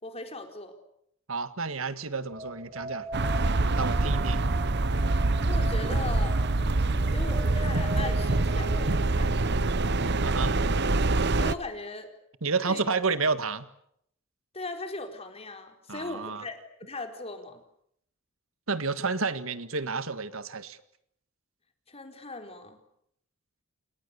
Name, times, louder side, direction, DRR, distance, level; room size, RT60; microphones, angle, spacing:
voice 1, 0.0-0.7 5.4-6.4 7.1-9.3 11.3-12.1 12.7-12.8 14.5-17.6 21.9-22.8, left 2 dB, 30° left, 5 dB, 4.4 m, -39 dB
voice 2, 1.3-3.1 3.7-4.4 10.2-10.5 12.4-13.7 15.9-16.4 18.7-20.8, right 4 dB, 80° right, 12 dB, 1.7 m, -30 dB
sound 1, 2.3-8.8, right 2 dB, 25° right, 1.9 m, -40 dB
sound 2, 3.1-11.5, right 2 dB, 55° right, 1.0 m, -25 dB
29.5 x 29.0 x 7.0 m, 0.73 s
head